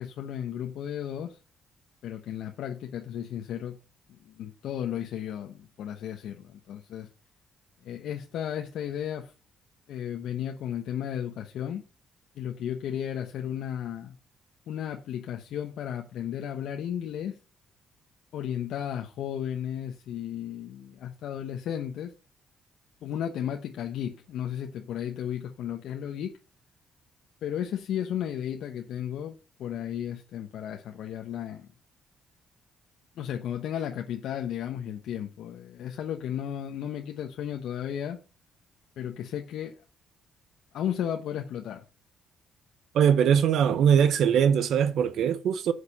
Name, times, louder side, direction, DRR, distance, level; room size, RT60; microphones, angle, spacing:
voice 1, 0.0-1.4 2.0-3.8 4.1-7.1 7.8-9.3 9.9-11.8 12.3-14.2 14.7-17.4 18.3-22.1 23.0-26.4 27.4-31.7 33.2-38.2 39.0-39.8 40.7-41.8, left 10 dB, 80° left, 1.0 m, -34 dB
voice 2, 42.9-45.7, right 8 dB, 75° right, 0.8 m, -21 dB
10.0 x 6.5 x 5.4 m
cardioid pair, 90°, 0 cm